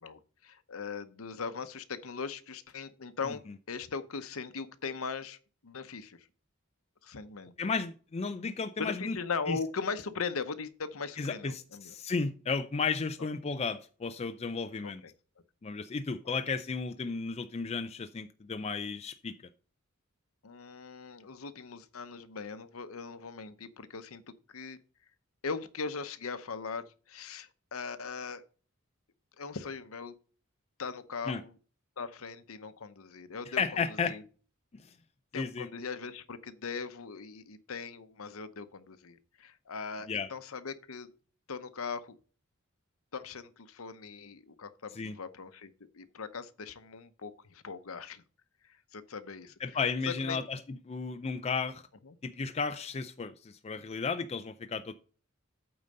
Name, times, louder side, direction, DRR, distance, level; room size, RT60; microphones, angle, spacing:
voice 1, 0.0-5.4 5.6-6.3 7.0-7.5 8.8-11.9 14.8-15.1 20.4-24.2 24.5-24.8 25.4-28.4 29.4-30.1 30.8-31.5 32.0-34.2 35.3-41.1 41.5-42.2 43.1-48.2 48.9-49.5 50.1-50.4 52.1-52.2, left 5 dB, 80° left, 0.8 m, -39 dB
voice 2, 7.6-9.2 9.5-9.6 11.2-15.0 15.6-19.3 31.3-31.4 33.5-34.2 34.7-34.9 35.3-35.7 40.1-40.3 44.9-45.2 49.6-51.8 52.2-54.9, left 5 dB, 30° left, 0.4 m, -34 dB
8.7 x 4.0 x 6.5 m
head